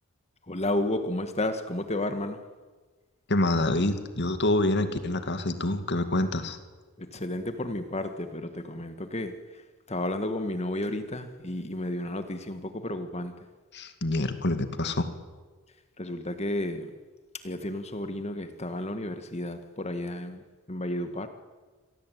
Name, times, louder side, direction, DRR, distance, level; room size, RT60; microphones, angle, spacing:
voice 1, 0.5-2.4 7.0-9.3 9.9-13.3 16.0-16.9 17.4-20.4 20.7-21.3, left 1 dB, 30° left, 9 dB, 1.7 m, -32 dB
voice 2, 3.3-6.6 13.7-15.1, left 1 dB, 55° left, 9 dB, 2.3 m, -26 dB
27.0 x 18.0 x 9.3 m, 1.3 s
head